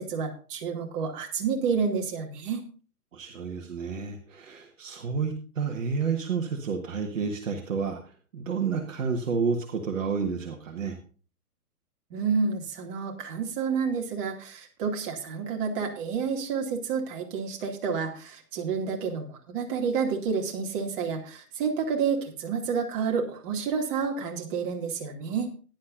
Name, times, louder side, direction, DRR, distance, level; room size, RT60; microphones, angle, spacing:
voice 1, 0.0-2.6 12.1-25.5, right 5 dB, 35° right, 1 dB, 2.5 m, -29 dB
voice 2, 3.1-11.0, right 5 dB, 55° right, 4 dB, 1.7 m, -30 dB
15.5 x 10.5 x 2.6 m, 0.37 s
figure-of-eight pair, 125°, 46 cm